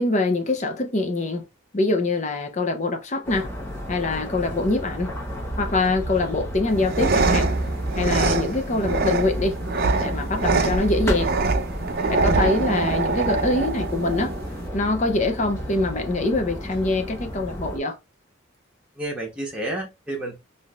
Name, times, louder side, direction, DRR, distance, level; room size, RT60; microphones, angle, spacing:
voice 1, 0.0-1.4 1.7-3.5 3.9-5.1 5.6-7.5 8.0-9.6 10.0-11.3 12.1-14.3 14.7-18.0, left 2 dB, 35° left, 0.6 m, -24 dB
sound 1, 3.2-17.8, equal, 10° left, 0.9 m, -31 dB
sound 2, 6.7-14.7, right 3 dB, 50° right, 0.5 m, -24 dB
voice 2, 11.9-12.8 18.9-20.4, right 1 dB, 5° right, 1.1 m, -32 dB
3.6 x 2.7 x 2.4 m
head